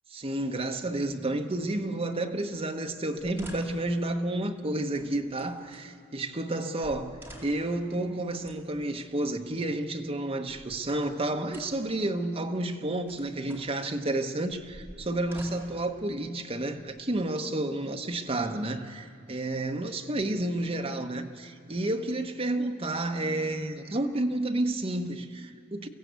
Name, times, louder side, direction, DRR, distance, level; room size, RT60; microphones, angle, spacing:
voice 1, 0.1-25.9, right 1 dB, 30° right, 1.0 m, -31 dB
sound 1, 3.1-3.9 4.9-5.9 6.5-6.6 6.8-7.8 8.4-9.1 10.2-11.2 11.5-11.9 12.8-13.7 14.5-15.9 16.7-17.4, right 1 dB, 10° right, 2.4 m, -49 dB
23.5 x 15.5 x 8.1 m
head